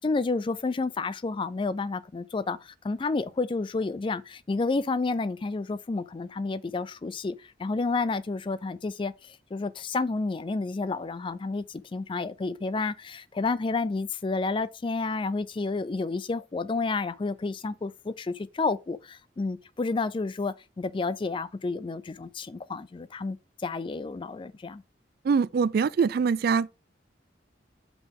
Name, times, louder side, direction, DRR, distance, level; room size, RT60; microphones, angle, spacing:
voice 1, 0.0-24.8, left 3 dB, 30° left, 0.3 m, -30 dB
voice 2, 25.2-26.7, right 5 dB, 55° right, 0.3 m, -23 dB
5.9 x 5.5 x 3.6 m
head